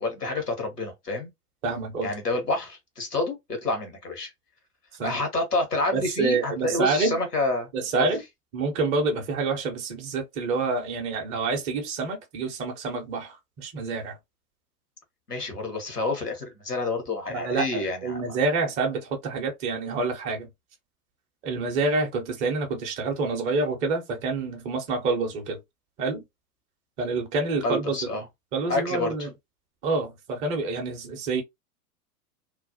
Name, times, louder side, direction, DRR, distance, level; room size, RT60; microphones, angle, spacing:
voice 1, 0.0-1.3 2.0-4.3 5.0-8.1 15.3-18.4 27.6-28.3 28.7-29.3, left 2 dB, 85° left, 1.0 m, -28 dB
voice 2, 1.6-2.1 5.0-5.2 5.9-7.2 7.7-8.2 8.5-14.2 17.3-20.5 21.4-25.6 26.0-26.2 27.0-28.2 28.5-29.3 29.8-31.4, right 3 dB, 15° right, 0.4 m, -27 dB
2.4 x 2.0 x 2.6 m
figure-of-eight pair, 90°, 46 cm